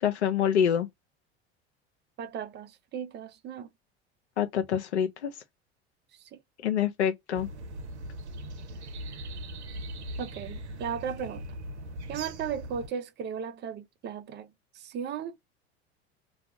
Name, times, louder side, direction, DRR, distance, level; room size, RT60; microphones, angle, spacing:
voice 1, 0.0-0.9 4.4-5.3 6.6-7.5, left 9 dB, 85° left, 0.6 m, -26 dB
voice 2, 2.2-3.7 6.3-6.4 10.2-11.4 12.1-14.5 14.8-15.3, right 7 dB, 30° right, 0.6 m, -36 dB
sound 1, 7.3-12.9, right 1 dB, 85° right, 0.6 m, -40 dB
2.4 x 2.2 x 3.4 m
hypercardioid pair, 70°, 33 cm